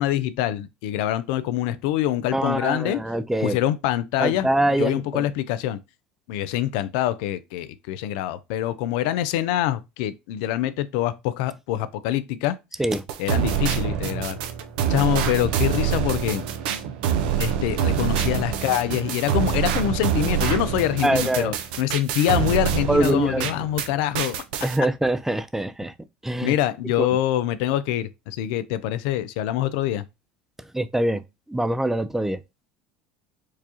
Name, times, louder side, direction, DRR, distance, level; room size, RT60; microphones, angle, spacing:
voice 1, 0.0-3.0 3.4-5.8 6.3-12.6 13.2-14.4 14.9-16.4 17.4-24.4 26.4-30.0, left 12 dB, 70° left, 0.4 m, -25 dB
voice 2, 2.3-3.6 4.2-5.3 12.8-13.0 21.0-21.5 22.9-23.5 24.6-25.9 26.2-26.5 27.0-27.1 30.7-31.2 31.5-32.4, right 1 dB, 5° right, 0.3 m, -23 dB
sound 1, 12.9-23.9 24.1-24.8, right 9 dB, 75° right, 0.5 m, -25 dB
4.6 x 2.4 x 2.8 m
hypercardioid pair, 85°, 5 cm